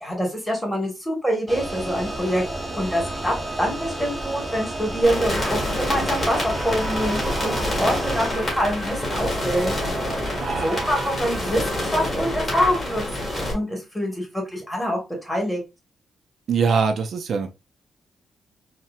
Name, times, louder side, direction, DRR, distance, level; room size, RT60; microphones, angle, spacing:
voice 1, 0.0-2.4 2.7-9.7 10.6-13.0 13.3-15.6, equal, 5° left, 1.2 m, -25 dB
sound 1, 1.5-8.4, right 1 dB, 15° right, 0.7 m, -31 dB
sound 2, 5.0-13.5, left 1 dB, 20° left, 1.6 m, -27 dB
voice 2, 10.4-10.9 16.5-17.5, right 5 dB, 60° right, 0.4 m, -23 dB
4.1 x 2.1 x 2.3 m
cardioid pair, 125°, 0 cm